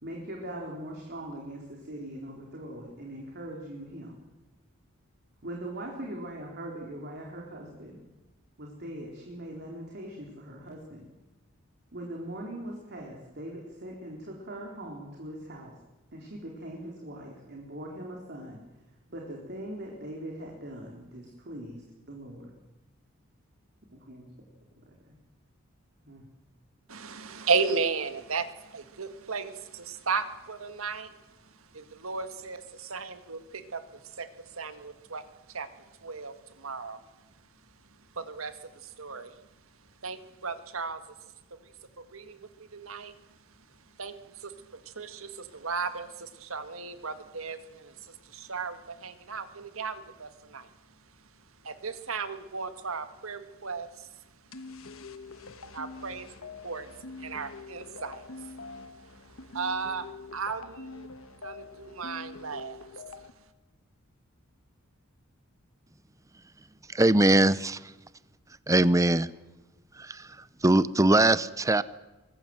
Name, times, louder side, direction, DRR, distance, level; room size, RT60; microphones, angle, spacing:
voice 1, 0.0-4.2 5.4-8.0 8.6-11.1 11.9-15.7 16.1-18.6 19.1-22.5 23.9-24.3 24.8-25.2 26.0-26.3, right 1 dB, 55° right, 0 dB, 4.0 m, -41 dB
voice 2, 26.9-31.1 31.7-34.3 34.6-35.2 35.5-35.7 36.0-37.0 38.2-38.6 38.8-39.3 40.0-41.0 42.1-43.1 44.0-50.7 51.6-54.1 55.7-56.9 57.2-58.5 59.5-60.1 60.3-61.1 61.4-62.9, right 5 dB, 85° right, 10 dB, 1.8 m, -35 dB
sound 1, 54.5-63.3, left 3 dB, 75° left, 1.3 m, -45 dB
voice 3, 66.9-67.9 68.7-69.3 69.9-71.8, right 2 dB, 15° right, 16 dB, 0.7 m, -22 dB
24.0 x 20.0 x 7.9 m, 1.1 s
head